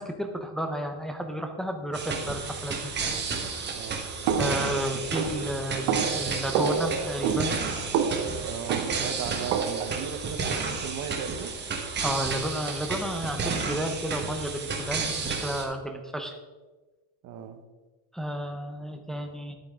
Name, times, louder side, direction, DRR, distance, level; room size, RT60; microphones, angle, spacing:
voice 1, 0.0-3.3 4.4-7.6 12.0-16.4 18.1-19.5, equal, ahead, 0.6 m, -32 dB
sound 1, 1.9-15.6, right 4 dB, 20° right, 1.2 m, -32 dB
voice 2, 3.7-4.1 4.9-5.2 8.4-11.6 17.2-17.6, right 7 dB, 40° right, 0.9 m, -37 dB
sound 2, 4.3-10.0, right 7 dB, 75° right, 1.1 m, -29 dB
11.5 x 8.7 x 3.6 m
cardioid pair, 155°, 47 cm